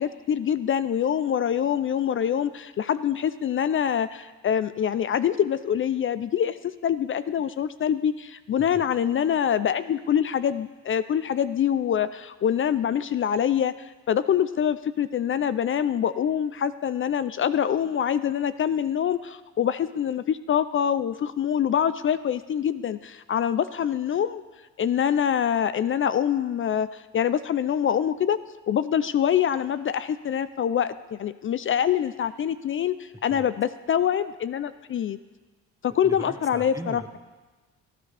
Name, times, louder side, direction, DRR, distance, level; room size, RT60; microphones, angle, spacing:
voice 1, 0.0-24.4 24.8-28.4 28.7-35.2 35.8-37.0, left 9 dB, 45° left, 14 dB, 0.4 m, -25 dB
voice 2, 36.0-37.2, right 2 dB, 10° right, 6 dB, 0.8 m, -39 dB
18.0 x 12.0 x 3.3 m, 1.3 s
cardioid pair, 90°, 30 cm